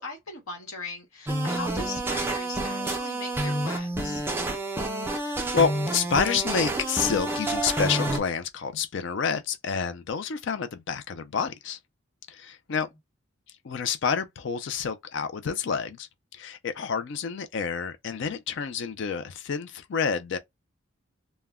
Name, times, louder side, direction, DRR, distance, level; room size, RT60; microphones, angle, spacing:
voice 1, 0.0-4.2 12.7-12.8, left 3 dB, 90° left, 1.0 m, -39 dB
sound 1, 1.3-8.2, right 1 dB, 10° right, 0.4 m, -29 dB
voice 2, 5.5-11.8 12.3-12.9 13.6-20.4, left 6 dB, 60° left, 0.4 m, -28 dB
2.1 x 2.0 x 3.5 m
head